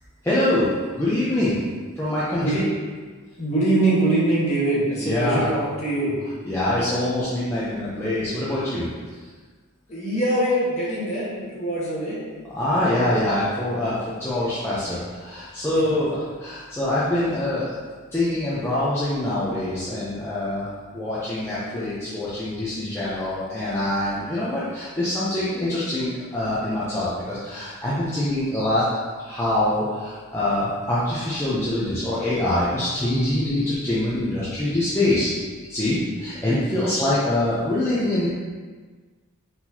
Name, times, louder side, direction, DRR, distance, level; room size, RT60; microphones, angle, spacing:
voice 1, 0.2-0.7 1.0-1.6 1.9-2.6 5.0-5.5 6.4-8.9 12.5-17.8 18.1-28.9 29.2-35.3 35.7-38.3, left 1 dB, 10° left, -10 dB, 0.6 m, -24 dB
voice 2, 2.4-2.7 3.4-6.1 9.9-12.2 15.7-15.8, right 1 dB, 30° left, -8 dB, 1.3 m, -23 dB
4.4 x 4.0 x 2.8 m, 1.5 s
head